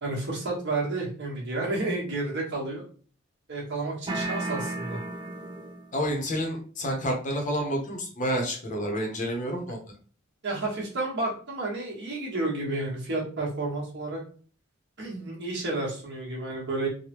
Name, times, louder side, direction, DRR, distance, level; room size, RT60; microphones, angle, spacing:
voice 1, 0.0-2.8 3.5-5.0 10.4-14.2 15.0-16.9, right 2 dB, 60° right, -3 dB, 1.2 m, -31 dB
sound 1, 4.1-6.0, right 2 dB, 25° right, 0.4 m, -33 dB
voice 2, 5.9-9.8, equal, 40° left, 1 dB, 0.7 m, -29 dB
3.3 x 2.1 x 2.9 m, 0.42 s
head